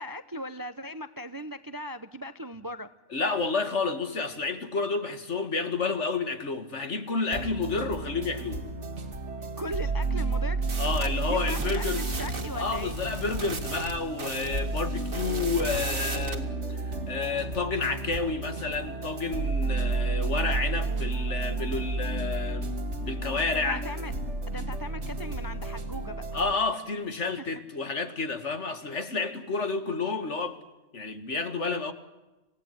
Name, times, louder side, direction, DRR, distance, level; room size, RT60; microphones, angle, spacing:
voice 1, 0.0-2.9 9.6-10.6 11.0-13.0 23.5-24.1 24.5-26.2 27.3-27.5, equal, 20° right, 0.7 m, -38 dB
voice 2, 3.1-8.6 10.8-12.1 12.5-16.8 17.1-23.8 26.3-30.6 30.9-31.9, left 4 dB, 55° left, 2.2 m, -30 dB
sound 1, 7.3-26.5, right 3 dB, 55° right, 2.1 m, -32 dB
sound 2, 10.6-16.4, right 3 dB, 75° right, 2.8 m, -37 dB
27.5 x 17.0 x 9.4 m
omnidirectional pair, 1.4 m